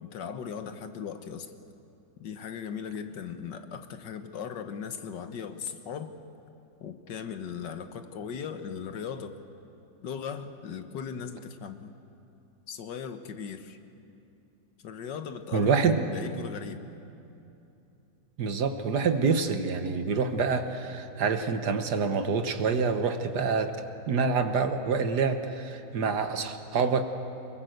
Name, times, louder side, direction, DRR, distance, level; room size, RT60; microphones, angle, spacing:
voice 1, 0.0-1.5 2.2-6.2 6.8-9.4 10.0-11.9 12.7-13.8 14.8-16.8, left 7 dB, 70° left, 8 dB, 1.7 m, -38 dB
voice 2, 15.5-16.1 18.4-27.0, right 5 dB, 60° right, 8 dB, 1.6 m, -27 dB
24.5 x 21.0 x 7.9 m, 2.8 s
omnidirectional pair, 2.1 m